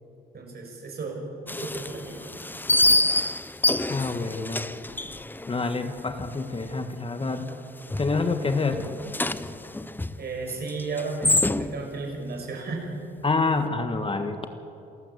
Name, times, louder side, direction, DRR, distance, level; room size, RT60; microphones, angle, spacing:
voice 1, 0.3-1.2 1.5-2.3 10.2-12.9, right 4 dB, 55° right, 1 dB, 6.2 m, -34 dB
sound 1, 1.5-6.4 6.6-6.7 7.2-7.6 7.9-12.0, left 2 dB, 10° left, 0.7 m, -27 dB
voice 2, 3.9-4.7 5.5-7.5 8.0-8.8 13.2-14.4, left 3 dB, 25° left, 7 dB, 1.5 m, -27 dB
28.0 x 13.5 x 8.3 m, 2.7 s
cardioid pair, 90°, 20 cm